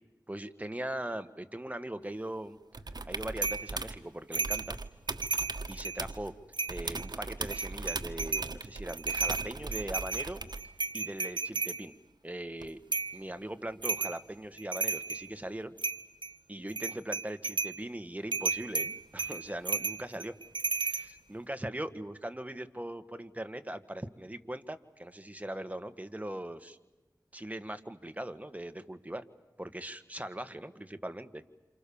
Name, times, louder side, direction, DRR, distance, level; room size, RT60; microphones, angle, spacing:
voice 1, 0.3-2.6 3.1-4.8 5.7-6.3 6.7-10.4 10.9-11.9 12.2-12.8 13.1-15.8 16.5-20.3 21.3-26.8 27.3-29.3 29.6-31.4, right 1 dB, 20° right, 9 dB, 1.8 m, -40 dB
sound 1, 2.7-4.0 4.3-6.3 6.7-10.7 12.6-12.7, right 3 dB, 65° right, 1.4 m, -39 dB
sound 2, 3.4-3.7 4.3-4.7 5.1-6.0 6.5-7.1 7.5-8.5 8.9-11.8 12.9-13.2 13.8-14.2 14.6-15.3 15.8-16.3 16.7-17.8 18.3-21.1, right 4 dB, 85° right, 1.2 m, -33 dB
29.5 x 28.0 x 7.2 m, 1.1 s
wide cardioid pair, 45°, 8 cm